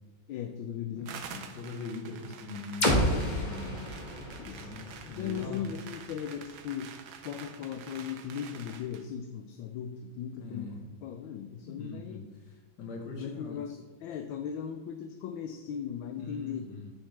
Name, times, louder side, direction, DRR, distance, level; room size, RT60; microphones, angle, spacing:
voice 1, 0.3-1.5 4.4-4.7 5.0-6.9 7.2-12.3 13.1-16.7, left 8 dB, 80° left, 7 dB, 1.3 m, -38 dB
sound 1, 1.1-9.1, right 7 dB, 65° right, 1.1 m, -48 dB
voice 2, 1.5-3.8 4.5-5.7 10.4-10.8 11.6-13.6 16.2-16.9, left 3 dB, 60° left, 2 dB, 1.7 m, -41 dB
sound 2, 2.8-6.7, equal, 25° left, 1.4 m, -31 dB
9.1 x 6.5 x 3.3 m, 1.2 s
omnidirectional pair, 2.2 m